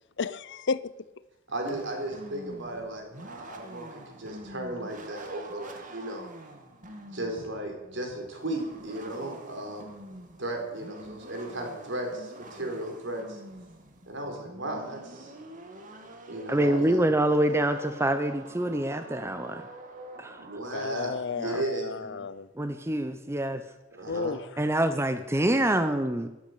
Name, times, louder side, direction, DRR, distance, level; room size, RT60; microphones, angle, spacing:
voice 1, 0.2-0.8 20.7-22.5 24.1-24.4, left 5 dB, 60° left, 18 dB, 0.6 m, -32 dB
voice 2, 1.5-6.3 7.1-9.9 10.4-13.4 14.1-15.3 16.3-17.0 20.4-22.1 23.9-24.4, right 1 dB, 65° right, 2 dB, 4.4 m, -35 dB
sound 1, 1.6-20.6, right 1 dB, 40° right, 2.1 m, -46 dB
voice 3, 16.5-19.6 20.2-20.4 21.4-21.6 22.6-23.6 24.6-26.3, right 1 dB, 15° right, 9 dB, 0.7 m, -26 dB
14.0 x 12.0 x 8.3 m, 1.0 s
head